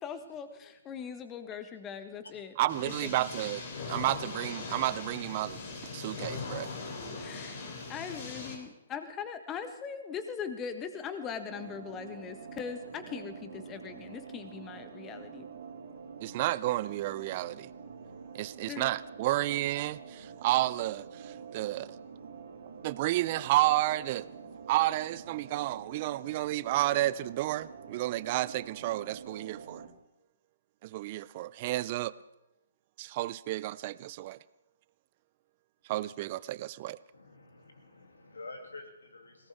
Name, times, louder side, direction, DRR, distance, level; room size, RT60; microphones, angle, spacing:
voice 1, 0.0-2.5 2.8-3.1 7.1-15.5 18.7-18.9, left 7 dB, 20° left, 9 dB, 1.4 m, -40 dB
voice 2, 2.6-5.6 5.9-6.7 16.2-17.7 18.3-21.9 22.8-24.3 24.7-29.8 30.8-32.1 33.0-34.4 35.9-37.0, right 16 dB, 40° right, 19 dB, 0.5 m, -31 dB
sound 1, 2.7-8.6, left 4 dB, 50° left, 3.2 m, -40 dB
sound 2, 11.5-29.9, right 6 dB, 60° right, 2.5 m, -47 dB
voice 3, 37.1-39.5, left 2 dB, 80° left, 4 dB, 2.8 m, -48 dB
20.0 x 17.5 x 3.6 m, 0.93 s
figure-of-eight pair, 130°, 0 cm